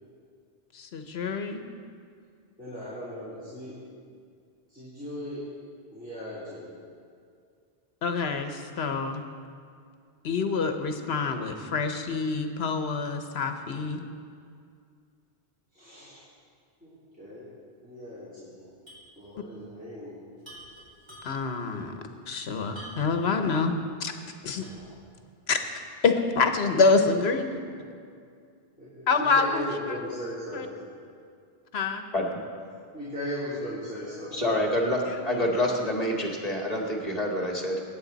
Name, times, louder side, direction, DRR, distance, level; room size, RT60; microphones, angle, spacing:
voice 1, 0.7-1.6 8.0-9.2 10.2-14.0 21.2-21.9 22.3-23.7 24.0-24.1 24.4-24.6 25.5-25.6 26.0-27.6 29.1-30.0 30.5-30.7 31.7-32.0 35.1-35.5, left 4 dB, 80° left, 7 dB, 1.2 m, -26 dB
voice 2, 2.6-3.8 4.1-4.2 4.7-5.4 5.9-6.8 15.7-16.2 16.8-17.5 17.8-18.7 19.2-20.1 24.6-24.9 27.6-27.7 28.8-30.9 32.9-34.3, left 1 dB, 10° right, -11 dB, 3.2 m, -38 dB
sound 1, 18.9-19.1 19.4-19.5 20.4-21.6 22.7-23.3 23.8-23.9 24.6-25.0, right 1 dB, 25° right, 4.3 m, -46 dB
voice 3, 34.3-37.8, left 1 dB, 40° left, 0 dB, 1.8 m, -27 dB
21.0 x 9.3 x 4.0 m, 2.3 s
omnidirectional pair, 1.0 m